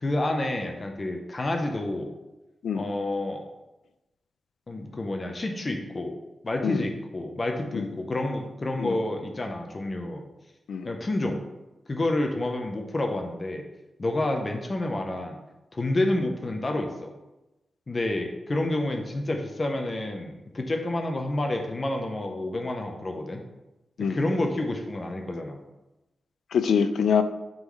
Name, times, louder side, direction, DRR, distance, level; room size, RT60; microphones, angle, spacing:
voice 1, 0.0-2.1 2.7-3.4 4.7-6.2 6.4-10.2 10.8-11.4 11.9-13.6 14.0-15.4 15.7-17.1 17.9-23.4 24.1-25.6, left 1 dB, 30° left, 3 dB, 0.7 m, -29 dB
voice 2, 26.5-27.2, left 6 dB, 90° left, 10 dB, 0.4 m, -24 dB
8.6 x 3.9 x 3.1 m, 1.0 s
wide cardioid pair, 145°, 0 cm